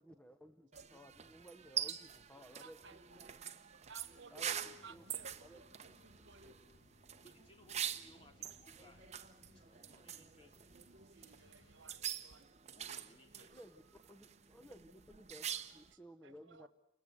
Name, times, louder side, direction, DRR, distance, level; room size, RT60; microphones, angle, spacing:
voice 1, 0.0-2.8 3.1-3.4 4.3-4.6 4.9-5.0 5.4-6.5 13.5-13.8 14.1-15.5 15.7-16.7, equal, 10° left, 8 dB, 0.9 m, -57 dB
sound 1, 0.7-15.9, right 9 dB, 35° right, 0.8 m, -45 dB
voice 2, 2.4-3.4 3.7-6.6 10.7-12.5 12.8-13.0 13.3-13.6 15.5-15.6 15.9-16.7, right 3 dB, 75° right, 12 dB, 1.3 m, -59 dB
sound 2, 4.3-12.0, left 1 dB, 70° left, 2.7 m, -68 dB
voice 3, 7.2-10.8 12.7-13.5, left 1 dB, 30° left, 3 dB, 3.0 m, -64 dB
29.5 x 14.5 x 9.3 m, 0.81 s
head